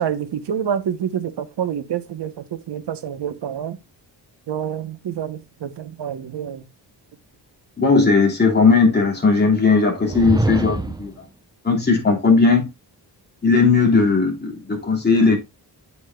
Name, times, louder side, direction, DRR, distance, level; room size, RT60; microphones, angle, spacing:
voice 1, 0.0-3.8 4.5-6.6, right 9 dB, 75° right, 1.0 m, -27 dB
voice 2, 7.8-11.2 11.6-12.7 13.4-15.4, left 4 dB, 25° left, 2.7 m, -17 dB
sound 1, 10.0-11.2, right 2 dB, 10° right, 0.6 m, -24 dB
8.4 x 7.1 x 2.2 m
wide cardioid pair, 135°, 42 cm